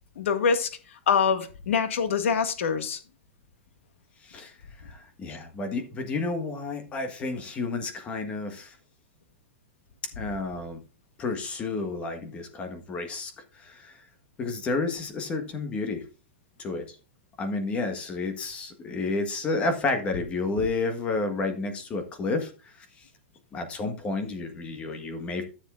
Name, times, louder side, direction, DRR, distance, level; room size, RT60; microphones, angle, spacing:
voice 1, 0.2-0.7 1.1-3.0, left 6 dB, 85° left, 1.9 m, -24 dB
voice 2, 4.2-4.5 4.8-8.8 10.2-10.8 11.2-14.0 14.4-16.0 16.6-17.0 17.4-23.1 23.5-25.4, left 3 dB, 20° left, 1.5 m, -31 dB
13.5 x 7.3 x 2.5 m
supercardioid pair, 165°, 7 cm